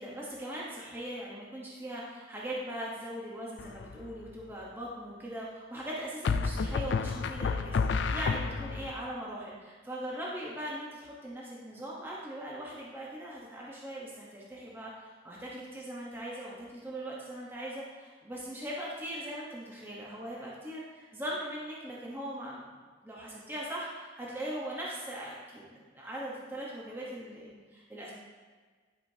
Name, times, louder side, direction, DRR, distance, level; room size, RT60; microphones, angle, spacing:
voice 1, 0.0-28.1, right 1 dB, 10° right, -5 dB, 0.9 m, -40 dB
sound 1, 3.6-4.1 6.3-8.9, left 5 dB, 70° left, 0.4 m, -30 dB
10.5 x 5.0 x 2.7 m, 1.5 s
head